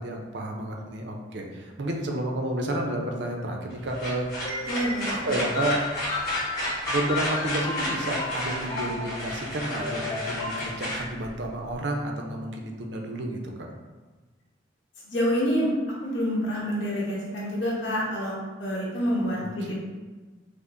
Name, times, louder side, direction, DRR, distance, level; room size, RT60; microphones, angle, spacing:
voice 1, 0.0-4.3 5.3-5.8 6.9-13.7 19.3-19.7, right 1 dB, 65° right, 1 dB, 0.5 m, -31 dB
sound 1, 2.4-3.7 4.4-10.6, left 3 dB, 20° left, 0.6 m, -35 dB
sound 2, 3.7-11.7, left 1 dB, 55° left, 1.4 m, -32 dB
voice 2, 4.6-5.2 15.1-15.7 16.0-19.7, equal, 85° left, -5 dB, 1.1 m, -27 dB
5.1 x 2.0 x 2.5 m, 1.3 s
head